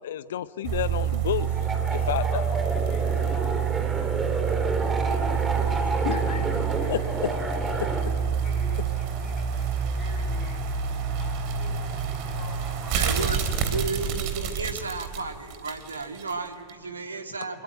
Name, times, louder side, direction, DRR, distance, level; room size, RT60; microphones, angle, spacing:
voice 1, 0.0-2.4 6.0-6.4 6.9-7.0, left 11 dB, 60° left, 16 dB, 0.7 m, -30 dB
sound 1, 0.6-16.3 16.7-16.8, right 7 dB, 45° right, 3.5 m, -28 dB
sound 2, 1.4-8.0, right 2 dB, 15° right, 3.3 m, -30 dB
voice 2, 2.0-5.0 5.8-14.7, equal, 30° left, 3 dB, 7.4 m, -47 dB
voice 3, 12.9-17.6, right 4 dB, 75° right, 5 dB, 2.2 m, -33 dB
26.5 x 22.5 x 9.4 m, 2.2 s
figure-of-eight pair, 90°, 0 cm